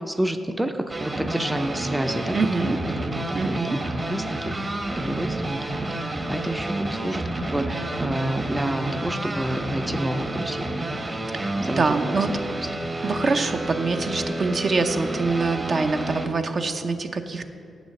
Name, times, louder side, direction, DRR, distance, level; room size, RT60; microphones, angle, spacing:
voice 1, 0.1-2.4 2.6-2.7 3.0-6.0 6.3-10.8 11.6-12.7, right 1 dB, 10° right, 8 dB, 0.5 m, -29 dB
sound 1, 0.9-16.3, right 1 dB, 35° right, 1.0 m, -30 dB
voice 2, 2.3-2.8 3.3-3.8 11.3-12.3 13.0-17.4, right 4 dB, 55° right, 6 dB, 0.6 m, -25 dB
7.3 x 6.1 x 7.8 m, 2.5 s
cardioid pair, 65°, 0 cm